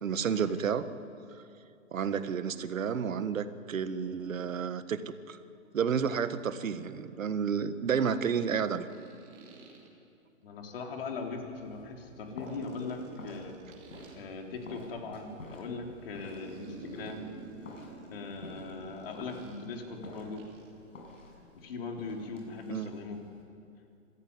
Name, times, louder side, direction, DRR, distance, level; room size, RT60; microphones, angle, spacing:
voice 1, 0.0-0.8 1.9-5.0 5.3-5.4 5.7-8.9 22.7-22.9, right 7 dB, 70° right, 12 dB, 1.5 m, -31 dB
sound 1, 6.2-6.3 8.8-9.9 12.4-14.2 16.4-19.8 20.4-20.7, right 4 dB, 20° right, 2.8 m, -49 dB
voice 2, 10.4-13.6 14.1-17.3 18.1-20.4 21.5-23.2, left 4 dB, 45° left, 2 dB, 3.5 m, -40 dB
sound 2, 11.2-23.4, left 2 dB, 65° left, 7.4 m, -50 dB
27.0 x 14.0 x 9.7 m, 2.6 s
hypercardioid pair, 170°, 41 cm